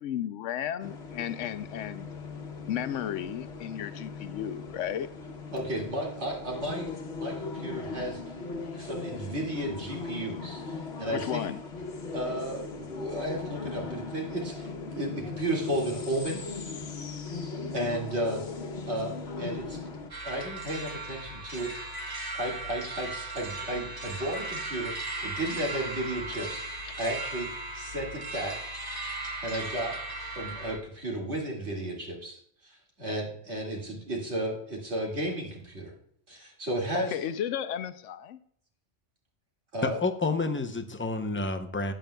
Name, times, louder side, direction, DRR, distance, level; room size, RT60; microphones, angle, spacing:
voice 1, 0.0-2.1 2.7-5.1 11.1-11.6 26.8-26.9 36.9-38.4, left 10 dB, 80° left, 13 dB, 0.9 m, -34 dB
sound 1, 0.8-20.1, left 4 dB, 60° left, 1.2 m, -39 dB
voice 2, 5.5-6.9 7.2-8.2 8.7-11.4 12.1-16.5 17.7-18.4 18.9-19.8 20.2-26.6 27.0-27.5 27.7-28.6 29.4-29.9 30.4-32.7 33.0-35.9 36.3-37.2 39.7-40.0, right 1 dB, 65° right, -2 dB, 2.5 m, -33 dB
sound 2, 20.1-30.8, right 2 dB, 20° right, 0.9 m, -37 dB
voice 3, 39.8-41.9, left 3 dB, 15° left, 6 dB, 0.4 m, -29 dB
14.0 x 8.9 x 2.2 m, 0.66 s
omnidirectional pair, 1.3 m